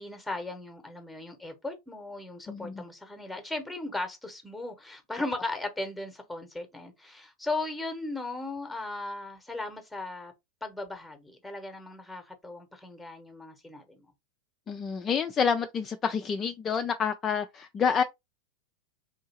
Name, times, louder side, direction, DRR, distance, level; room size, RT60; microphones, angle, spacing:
voice 1, 0.0-10.3 10.6-14.1, left 2 dB, 5° left, 0.9 m, -37 dB
voice 2, 2.5-2.8 14.7-18.0, left 6 dB, 25° left, 0.3 m, -28 dB
3.7 x 2.7 x 2.8 m
figure-of-eight pair, 90°, 0 cm